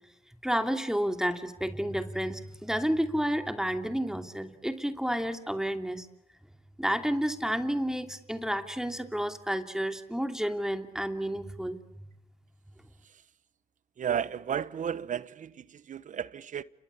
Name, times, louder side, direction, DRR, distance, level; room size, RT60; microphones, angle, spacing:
voice 1, 0.4-6.1 6.8-11.8, equal, 5° right, 2.8 m, -30 dB
voice 2, 14.0-16.6, right 8 dB, 60° right, 1.0 m, -33 dB
30.0 x 23.0 x 8.6 m
supercardioid pair, 60°, 15 cm